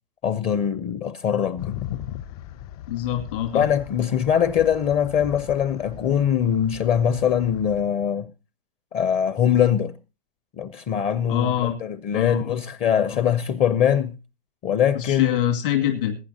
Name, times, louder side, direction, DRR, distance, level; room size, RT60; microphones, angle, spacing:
voice 1, 0.2-1.8 3.5-8.3 8.9-9.9 10.6-14.1 14.6-15.4, left 9 dB, 20° left, 0.6 m, -22 dB
sound 1, 1.6-7.8, left 12 dB, 40° left, 0.8 m, -38 dB
voice 2, 2.9-3.7 11.3-11.8 12.1-12.6 13.1-13.2 14.9-16.2, left 11 dB, 60° left, 2.4 m, -25 dB
21.5 x 9.4 x 2.8 m
hypercardioid pair, 135°, 30 cm